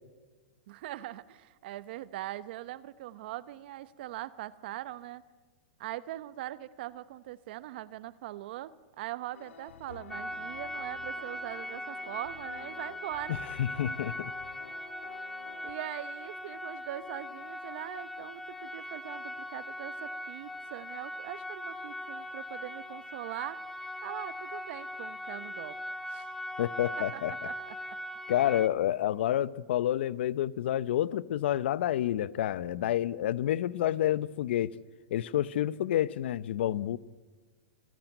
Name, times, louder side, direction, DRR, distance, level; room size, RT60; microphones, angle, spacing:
voice 1, 0.7-5.2 5.8-13.4 15.6-23.6 24.0-25.8 26.1-26.3 27.0-27.5, right 14 dB, 55° right, 1.0 m, -41 dB
sound 1, 9.3-15.7, left 8 dB, 85° left, 1.8 m, -51 dB
sound 2, 10.1-28.7, left 1 dB, 5° left, 0.9 m, -40 dB
voice 2, 13.3-14.3 26.6-27.3 28.3-34.8 35.1-37.0, left 12 dB, 65° left, 0.8 m, -29 dB
27.0 x 16.0 x 9.2 m
hypercardioid pair, 140°, 6 cm